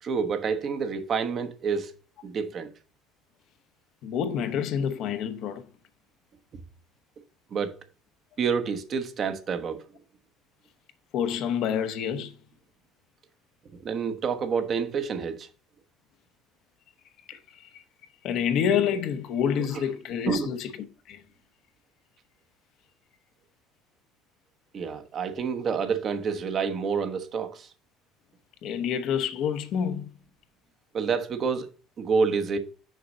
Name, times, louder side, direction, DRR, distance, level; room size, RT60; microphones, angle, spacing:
voice 1, 0.0-1.9 2.2-2.7 7.5-7.8 8.4-9.8 13.8-15.5 19.7-19.8 20.3-20.5 24.7-27.7 30.9-31.7 32.0-32.6, right 5 dB, 45° right, 1.1 m, -28 dB
voice 2, 4.0-5.6 11.1-12.3 17.3-17.8 18.2-20.7 21.1-21.2 28.6-30.1, left 8 dB, 65° left, 1.0 m, -28 dB
6.5 x 5.2 x 3.9 m
supercardioid pair, 80°, 0 cm